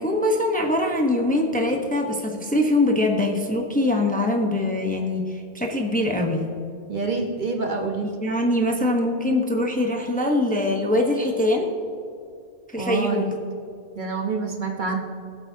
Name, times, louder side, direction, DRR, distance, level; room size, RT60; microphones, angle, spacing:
voice 1, 0.0-6.4 8.2-11.7 12.7-13.4, left 1 dB, 10° left, 2 dB, 0.9 m, -23 dB
voice 2, 6.9-8.1 12.8-13.2 14.0-15.0, right 4 dB, 50° right, 2 dB, 1.2 m, -26 dB
19.5 x 8.2 x 2.8 m, 2.5 s
omnidirectional pair, 1.1 m